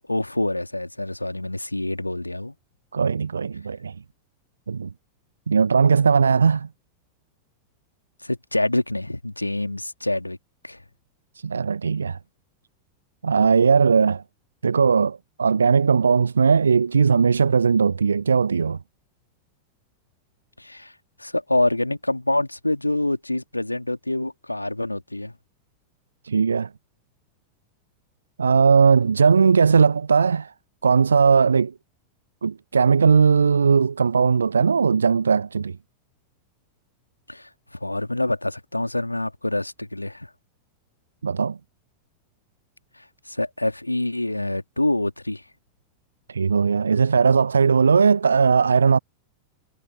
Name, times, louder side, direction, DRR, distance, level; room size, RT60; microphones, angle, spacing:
voice 1, 0.1-2.5 8.2-10.4 10.6-10.8 20.6-20.9 21.2-25.3 37.3-40.3 43.0-45.4, left 1 dB, 85° left, 2.5 m, -26 dB
voice 2, 2.9-4.0 4.7-4.9 5.5-6.7 11.4-12.2 13.2-14.2 14.6-18.8 26.2-26.7 28.4-30.5 30.8-31.7 32.4-35.8 41.2-41.6 46.3-49.0, right 5 dB, 75° right, 0.6 m, -18 dB
figure-of-eight pair, 90°, 0 cm